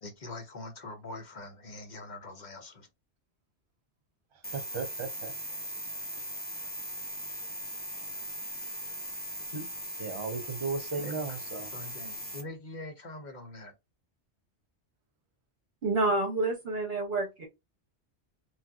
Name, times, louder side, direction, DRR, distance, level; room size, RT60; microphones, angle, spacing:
voice 1, 0.0-2.9 9.5-9.7 11.0-13.7, left 2 dB, 45° left, 0.8 m, -43 dB
sound 1, 4.4-12.4, equal, 10° left, 1.0 m, -39 dB
voice 2, 4.5-5.3 10.0-11.7, right 5 dB, 40° right, 0.5 m, -35 dB
voice 3, 15.8-17.5, right 2 dB, 65° right, 1.1 m, -28 dB
3.2 x 2.6 x 2.3 m
omnidirectional pair, 1.1 m